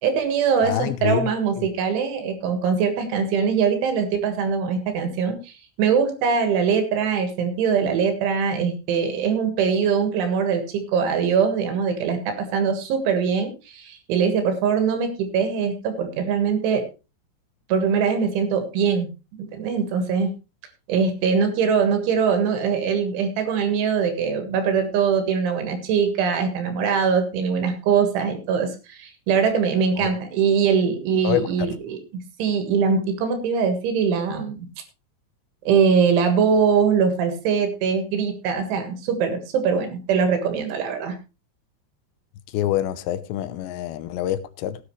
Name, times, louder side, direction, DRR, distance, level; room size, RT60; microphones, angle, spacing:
voice 1, 0.0-5.5 5.8-16.9 17.7-19.1 19.5-20.3 20.9-32.0 32.4-34.7 35.7-41.2, right 6 dB, 80° right, 4.0 m, -22 dB
voice 2, 0.6-1.3 30.0-30.1 31.2-31.4 42.5-44.8, left 12 dB, 75° left, 2.9 m, -25 dB
16.5 x 9.7 x 3.2 m
omnidirectional pair, 5.5 m